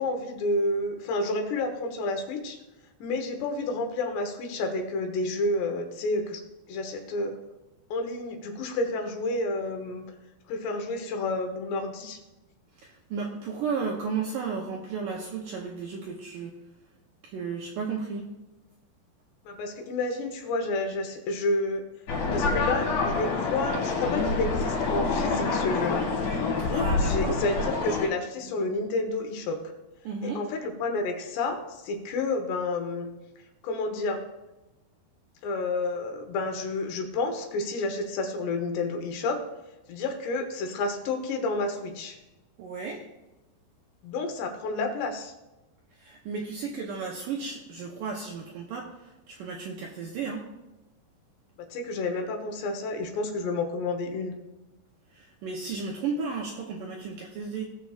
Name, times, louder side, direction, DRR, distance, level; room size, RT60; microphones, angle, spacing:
voice 1, 0.0-2.6 3.0-6.4 6.7-7.4 7.9-10.0 10.5-12.2 19.5-21.8 22.3-26.0 26.6-29.6 30.4-33.1 33.6-34.2 35.4-39.4 39.9-42.2 44.0-45.3 51.7-54.3, left 2 dB, 80° left, 5 dB, 3.3 m, -30 dB
voice 2, 12.7-16.6 17.2-18.3 26.6-27.4 28.4-28.5 30.0-30.4 42.6-43.1 45.9-50.5 55.1-57.6, right 5 dB, 80° right, -1 dB, 2.0 m, -34 dB
sound 1, 22.1-28.1, left 3 dB, 55° left, 3.0 m, -27 dB
18.0 x 7.0 x 2.4 m, 1.0 s
omnidirectional pair, 4.9 m